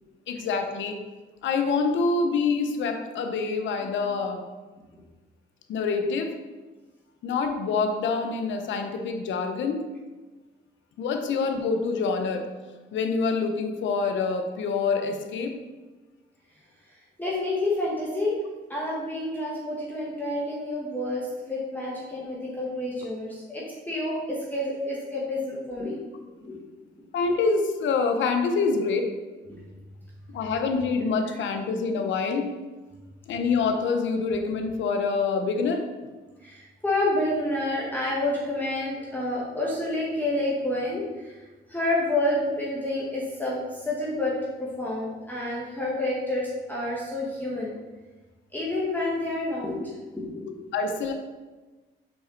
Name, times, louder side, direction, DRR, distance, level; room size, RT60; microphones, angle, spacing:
voice 1, 0.3-1.0 1.4-4.5 5.7-6.4 7.2-9.9 11.0-12.6 12.9-15.6 27.1-29.1 30.3-32.6 33.3-35.9 50.7-51.1, left 4 dB, 70° left, 6 dB, 0.8 m, -26 dB
voice 2, 17.2-18.4 18.7-26.0 26.4-26.6 29.5-29.6 36.4-41.4 41.7-44.3 44.6-47.7 48.5-49.9 50.2-50.5, left 1 dB, 10° left, -6 dB, 1.4 m, -29 dB
5.8 x 4.2 x 3.9 m, 1.2 s
cardioid pair, 90°, 20 cm